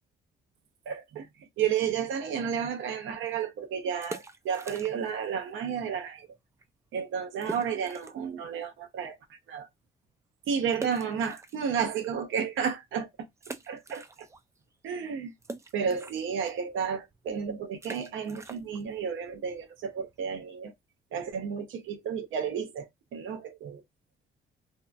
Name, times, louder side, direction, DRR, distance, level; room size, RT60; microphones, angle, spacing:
voice 1, 0.9-1.3 1.6-6.3 6.9-9.7 10.5-13.1 13.7-14.0 14.8-15.3 15.7-20.7 21.1-23.8, right 7 dB, 75° right, 0.7 m, -32 dB
sound 1, 4.0-5.3 5.5-5.6 6.2-6.3 6.6-6.7 7.4-8.3 8.8-8.9 10.7-12.1 12.6-12.7 13.4-14.6 14.8-20.3, right 3 dB, 15° right, 0.3 m, -44 dB
2.7 x 2.2 x 2.5 m
cardioid pair, 90°, 20 cm